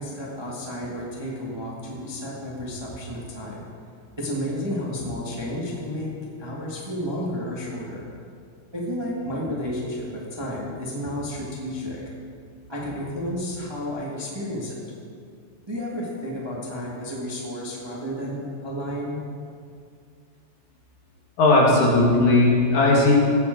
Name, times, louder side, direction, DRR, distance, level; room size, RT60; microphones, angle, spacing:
voice 1, 0.0-3.7 4.2-8.0 8.7-12.0 12.7-14.8 15.7-19.2, equal, 15° right, -4 dB, 1.1 m, -31 dB
voice 2, 21.4-23.2, left 2 dB, 80° left, -3 dB, 3.6 m, -17 dB
17.0 x 7.6 x 4.5 m, 2.3 s
omnidirectional pair, 3.4 m